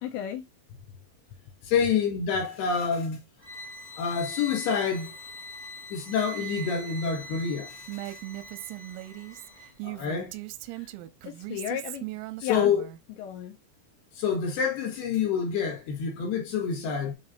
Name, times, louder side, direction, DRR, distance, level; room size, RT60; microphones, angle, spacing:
voice 1, 0.0-0.4 10.7-10.9 11.2-12.1 12.4-12.7 13.2-13.6, left 10 dB, 85° left, 2.7 m, -34 dB
voice 2, 1.6-3.2 4.0-5.1 5.9-7.8 8.1-8.2 9.8-10.3 12.4-12.8 14.2-17.1, left 6 dB, 65° left, 2.9 m, -27 dB
sound 1, 3.4-9.7, equal, 45° left, 0.5 m, -42 dB
Female speech woman speaking, 7.9-13.0, right 18 dB, 90° right, 3.3 m, -39 dB
8.8 x 4.0 x 2.6 m
omnidirectional pair, 5.9 m